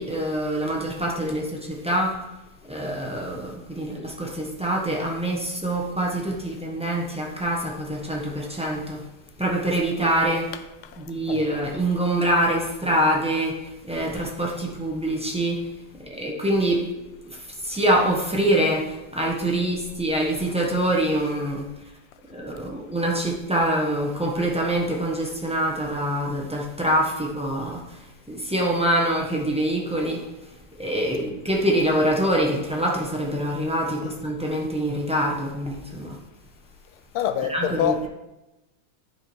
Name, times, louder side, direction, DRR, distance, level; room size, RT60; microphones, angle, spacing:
voice 1, 0.0-2.2 2.6-9.0 9.4-10.5 11.0-15.7 16.0-16.8 17.2-21.7 22.3-36.2 37.5-38.1, right 1 dB, 5° right, 0.4 m, -25 dB
voice 2, 37.1-38.1, left 9 dB, 80° left, 1.5 m, -25 dB
10.0 x 4.8 x 4.6 m
omnidirectional pair, 2.4 m